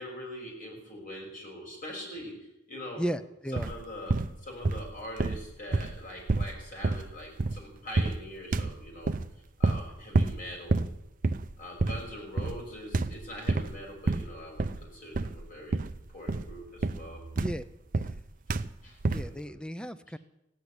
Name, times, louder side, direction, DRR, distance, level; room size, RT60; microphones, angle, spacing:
voice 1, 0.0-3.1 3.5-4.1 4.4-9.1 9.6-10.8 11.6-15.8 16.1-17.2 18.8-19.5, left 1 dB, 45° left, -1 dB, 6.2 m, -43 dB
voice 2, 3.0-3.7 17.4-17.6 17.9-18.1 19.1-20.2, equal, 5° left, 13 dB, 0.6 m, -35 dB
sound 1, 3.6-3.8 4.1-4.9 5.2-7.7 8.0-8.3 8.5-9.3 9.6-9.9 10.1-10.4 10.7-11.0 11.2-11.5 11.8-12.1 12.4-12.7 12.9-13.7 14.1-14.9 15.1-15.4 15.7-16.0 16.3-18.2 18.5-18.7 19.0-19.3, right 3 dB, 45° right, 0.6 m, -29 dB
16.0 x 8.5 x 9.9 m, 0.87 s
head